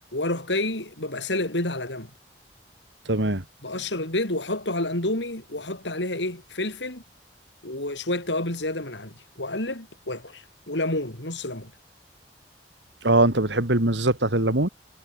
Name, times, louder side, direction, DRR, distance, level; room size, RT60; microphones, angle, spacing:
voice 1, 0.1-2.1 3.6-7.0 7.6-11.7, left 2 dB, 90° left, 7.8 m, -29 dB
voice 2, 3.1-3.4 13.0-14.7, right 2 dB, 90° right, 3.5 m, -21 dB
head